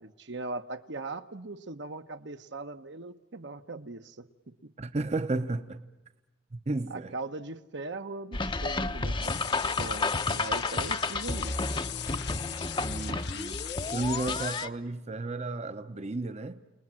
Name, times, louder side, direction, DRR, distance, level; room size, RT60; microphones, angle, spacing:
voice 1, 0.0-4.3 6.9-11.5, right 3 dB, 65° right, 8 dB, 1.1 m, -40 dB
voice 2, 4.8-5.8 6.5-7.1 12.8-13.6 13.9-16.6, right 2 dB, 35° right, 10 dB, 0.8 m, -33 dB
sound 1, 8.3-14.7, left 3 dB, 25° left, 0.8 m, -31 dB
sound 2, 9.2-14.7, left 12 dB, 60° left, 0.8 m, -39 dB
29.5 x 20.0 x 7.6 m, 1.0 s
head